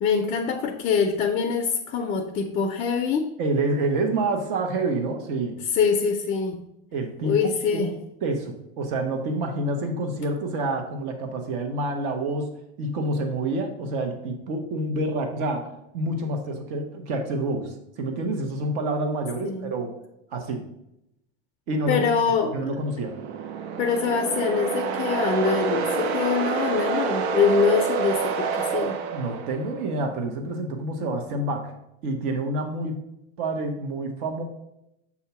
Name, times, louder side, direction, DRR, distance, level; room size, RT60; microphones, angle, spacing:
voice 1, 0.0-3.3 5.7-6.6 7.2-7.9 19.4-19.7 21.9-22.6 23.8-29.0, left 6 dB, 20° left, 4 dB, 0.4 m, -24 dB
voice 2, 3.4-5.6 6.9-12.5 12.8-15.7 15.9-19.9 20.3-20.6 21.7-22.1 22.5-23.1 29.1-31.7 32.0-33.0 33.4-34.4, right 2 dB, 55° right, 4 dB, 1.2 m, -28 dB
sound 1, 22.8-29.9, right 5 dB, 80° right, 0.8 m, -27 dB
7.2 x 2.8 x 5.6 m, 0.83 s
supercardioid pair, 150°, 32 cm